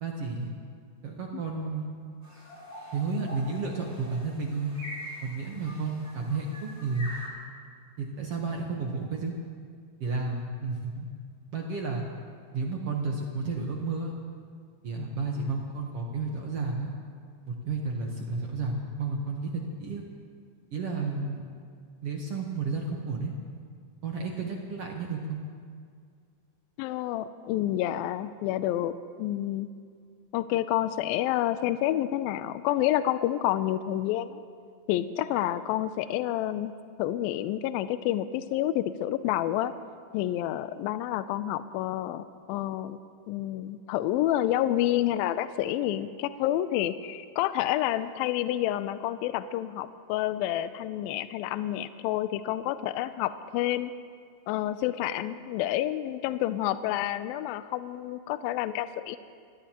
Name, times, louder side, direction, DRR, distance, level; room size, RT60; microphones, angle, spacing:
voice 1, 0.0-0.5 1.0-1.9 2.9-4.7 5.2-7.1 8.0-9.3 10.0-11.1 11.5-12.1 12.5-14.1 14.8-16.9 17.5-20.0 20.7-21.4 22.0-23.3 24.0-25.4, right 4 dB, 70° right, 0 dB, 1.4 m, -32 dB
sound 1, 2.2-7.3, equal, 5° left, 3.0 m, -44 dB
voice 2, 26.8-28.9 29.2-29.7 30.3-34.4 34.9-36.7 37.0-39.7 40.1-43.0 43.3-53.9 54.5-59.2, left 13 dB, 80° left, 12 dB, 2.2 m, -29 dB
25.5 x 17.0 x 3.0 m, 2.1 s
omnidirectional pair, 4.4 m